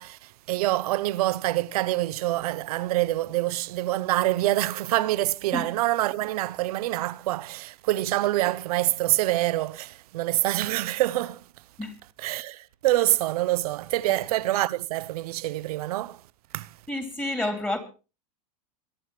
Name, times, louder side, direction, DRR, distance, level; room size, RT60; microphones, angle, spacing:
voice 1, 0.0-11.4 12.2-16.2 16.5-16.7, right 16 dB, 70° right, 0.7 m, -26 dB
voice 2, 16.9-17.8, left 1 dB, 10° left, 2.8 m, -29 dB
23.5 x 11.0 x 3.3 m
hypercardioid pair, 125°, 20 cm